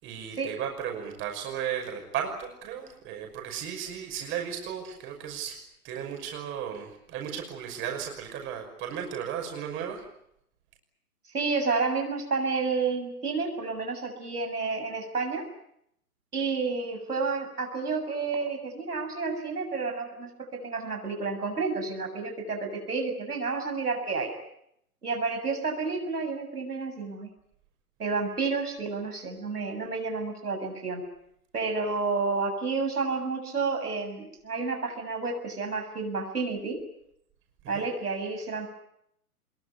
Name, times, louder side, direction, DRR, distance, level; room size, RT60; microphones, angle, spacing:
voice 1, 0.0-5.6 5.8-10.0 37.6-37.8, right 8 dB, 25° right, 3 dB, 5.9 m, -35 dB
voice 2, 11.3-15.4 16.3-24.3 25.0-27.3 28.0-31.0 31.5-36.8 37.7-38.7, right 4 dB, 80° right, 4 dB, 7.3 m, -30 dB
25.0 x 22.0 x 9.7 m, 0.76 s
figure-of-eight pair, 125°, 45 cm